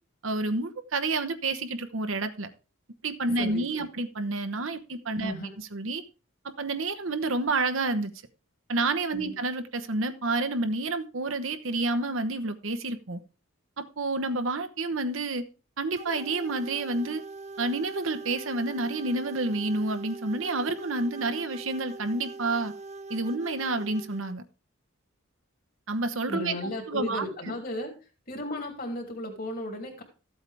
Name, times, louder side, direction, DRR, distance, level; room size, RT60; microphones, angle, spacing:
voice 1, 0.2-2.5 3.0-6.0 6.4-8.1 8.7-13.2 13.8-15.4 15.8-17.2 17.6-22.7 23.1-24.4 25.9-27.5, right 2 dB, 70° right, 8 dB, 1.1 m, -29 dB
voice 2, 3.3-3.8 5.2-5.5 9.1-9.3 26.3-27.9 28.3-30.0, left 1 dB, 45° left, 1 dB, 3.0 m, -35 dB
sound 1, 16.0-24.4, right 3 dB, 30° right, 0.6 m, -42 dB
14.0 x 8.1 x 3.5 m, 0.34 s
head